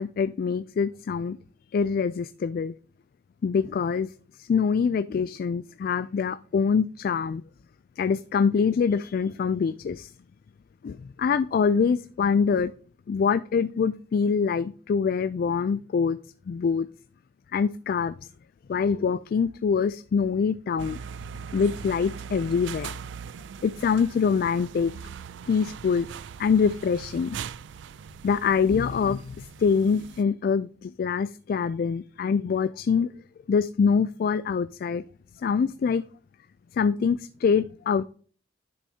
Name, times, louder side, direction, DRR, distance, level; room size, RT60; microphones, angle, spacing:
voice 1, 0.0-1.4 1.7-2.7 3.4-4.1 4.4-7.4 8.0-10.1 10.8-12.7 13.1-16.2 16.5-16.9 17.5-18.1 18.7-21.0 21.5-22.9 23.6-24.9 25.5-26.1 26.4-27.4 28.2-33.1 33.5-35.0 35.4-36.0 36.7-38.0, left 6 dB, 50° left, 14 dB, 0.3 m, -24 dB
sound 1, 20.8-30.2, right 7 dB, 70° right, 0.3 m, -40 dB
11.0 x 6.3 x 2.8 m, 0.43 s
head